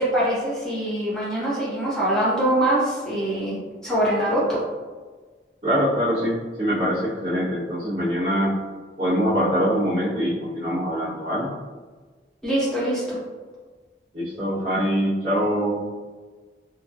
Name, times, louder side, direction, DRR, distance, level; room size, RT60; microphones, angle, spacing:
voice 1, 0.0-4.6 12.4-13.2, right 1 dB, 5° left, -9 dB, 0.8 m, -23 dB
voice 2, 5.6-8.5 9.0-11.5 14.1-15.8, equal, 40° right, -15 dB, 0.9 m, -23 dB
2.9 x 2.6 x 2.3 m, 1.4 s
head